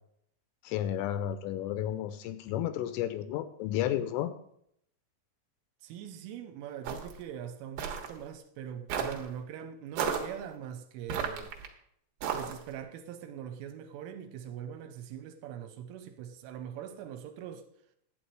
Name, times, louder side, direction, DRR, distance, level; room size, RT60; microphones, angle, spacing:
voice 1, 0.6-4.3, left 11 dB, 85° left, 3.0 m, -32 dB
voice 2, 5.8-11.5 12.3-17.6, right 9 dB, 85° right, 3.2 m, -42 dB
sound 1, 6.8-7.2 7.8-8.1 8.9-9.2 10.0-10.3 11.1-11.7 12.2-12.7, right 7 dB, 65° right, 2.5 m, -33 dB
11.5 x 8.6 x 4.7 m
omnidirectional pair, 5.9 m